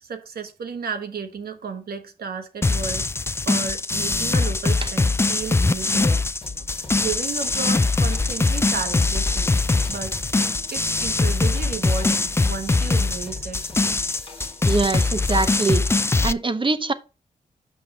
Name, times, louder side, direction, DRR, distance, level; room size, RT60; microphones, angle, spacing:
voice 1, 0.0-3.1 3.4-6.2 7.0-9.6 9.9-10.2 10.7-13.6, right 5 dB, 75° right, 1.1 m, -33 dB
sound 1, 2.6-16.3, left 3 dB, 15° left, 0.3 m, -22 dB
sound 2, 6.4-15.6, left 3 dB, 35° left, 1.4 m, -40 dB
voice 2, 14.7-15.8 16.2-16.9, right 3 dB, 30° right, 0.8 m, -23 dB
6.1 x 5.5 x 3.8 m
cardioid pair, 50°, 16 cm